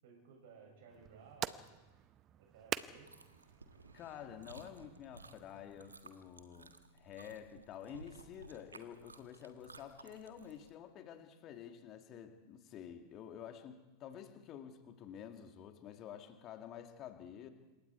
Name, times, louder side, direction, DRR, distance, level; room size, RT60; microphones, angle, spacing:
voice 1, 0.0-1.7 2.4-3.1, right 5 dB, 55° right, 0 dB, 7.5 m, -58 dB
sound 1, 0.9-6.0, right 11 dB, 30° right, 0.8 m, -46 dB
Chewing mastication, 2.8-10.7, right 3 dB, 75° right, 1.5 m, -57 dB
voice 2, 3.9-17.5, left 9 dB, 35° left, 6 dB, 2.4 m, -50 dB
27.0 x 23.0 x 4.8 m, 1.1 s
figure-of-eight pair, 90°, 0 cm